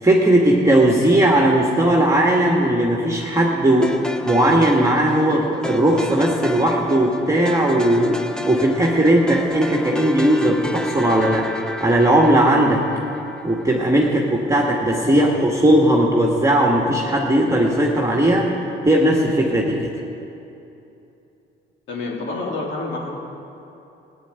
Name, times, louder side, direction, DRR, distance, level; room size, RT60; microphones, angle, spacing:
voice 1, 0.0-3.9 4.3-12.8 13.4-18.5 18.8-19.9, right 1 dB, 15° right, -1 dB, 1.8 m, -17 dB
sound 1, 3.8-14.1, left 1 dB, 5° left, 1.0 m, -31 dB
voice 2, 21.9-23.1, left 2 dB, 75° left, -3 dB, 3.6 m, -28 dB
15.0 x 9.3 x 9.1 m, 2.9 s
cardioid pair, 90°, 20 cm